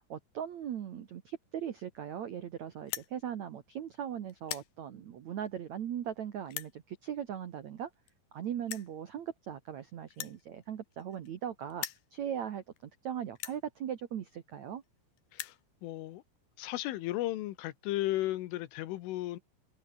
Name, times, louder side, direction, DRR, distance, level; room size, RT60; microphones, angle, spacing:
voice 1, 0.0-7.9 8.3-11.8 12.1-14.8, right 9 dB, 75° right, 1.6 m, -39 dB
sound 1, 2.8-3.1 3.8-4.0 4.3-4.7 5.5-5.6 6.5-6.7 7.8-8.1 8.7-8.9 10.1-11.4 11.7-12.1 12.8-12.9 13.3-13.6 14.5-14.6 14.8-14.9 15.2-15.6, left 14 dB, 65° left, 2.6 m, -41 dB
voice 2, 15.8-16.2 16.6-19.4, left 16 dB, 85° left, 3.8 m, -34 dB
omnidirectional pair, 5.6 m